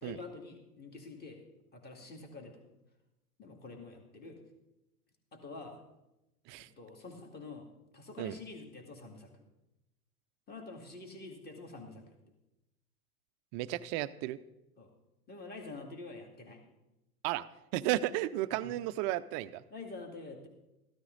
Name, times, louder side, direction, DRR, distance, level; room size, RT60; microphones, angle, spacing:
voice 1, 0.0-1.4 1.7-2.6 3.4-4.4 5.3-5.8 6.6-7.7 7.9-9.3 10.5-12.1 14.8-14.9 15.3-16.7 18.6-18.7 19.7-20.5, left 3 dB, 20° left, 3 dB, 2.3 m, -47 dB
voice 2, 13.5-14.4 17.2-17.5 17.7-19.6, right 15 dB, 35° right, 12 dB, 0.5 m, -33 dB
14.0 x 12.5 x 3.9 m, 0.95 s
hypercardioid pair, 100°, 46 cm